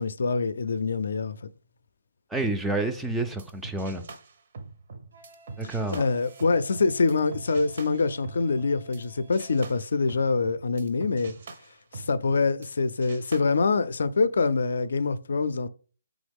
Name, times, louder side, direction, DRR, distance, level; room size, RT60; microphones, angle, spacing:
voice 1, 0.0-1.4 5.6-11.3 11.9-15.7, left 4 dB, 70° left, 0.3 m, -25 dB
voice 2, 2.3-4.0 5.6-6.0, right 2 dB, 5° right, 0.3 m, -29 dB
sound 1, 3.0-9.0 9.3-12.7 13.0-13.4, right 4 dB, 50° right, 0.6 m, -44 dB
Wind instrument woodwind instrument, 5.1-9.7, left 1 dB, 80° right, 1.3 m, -57 dB
3.9 x 3.6 x 3.5 m
hypercardioid pair, 165°, 0 cm